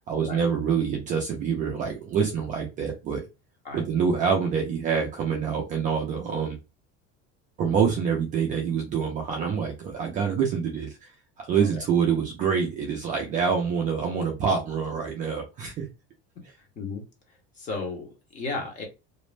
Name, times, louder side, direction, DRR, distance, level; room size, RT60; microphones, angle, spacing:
voice 1, 0.1-3.2 3.7-6.6 7.6-11.1 11.4-15.8, right 6 dB, 25° right, 0 dB, 0.3 m, -26 dB
voice 2, 16.8-18.8, left 3 dB, 25° left, 2 dB, 0.7 m, -35 dB
2.5 x 2.0 x 3.1 m, 0.27 s
cardioid pair, 180°, 30 cm